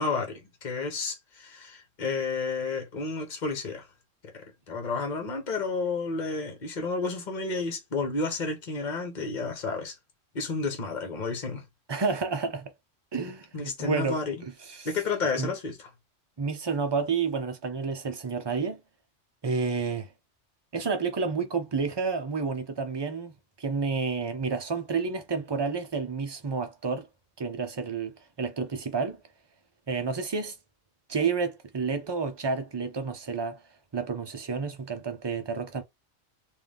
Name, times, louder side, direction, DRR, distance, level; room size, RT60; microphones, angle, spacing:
voice 1, 0.0-3.9 4.2-9.9 10.3-11.6 13.5-14.4 14.8-15.9, left 4 dB, 40° left, 1.2 m, -31 dB
voice 2, 11.9-12.7 13.1-14.2 14.7-14.9 15.4-15.5 16.4-18.8 19.4-20.1 20.7-27.1 27.4-29.2 29.9-30.5 31.1-33.6 33.9-35.8, right 5 dB, 25° right, 0.7 m, -30 dB
3.8 x 2.7 x 3.5 m
omnidirectional pair, 1.3 m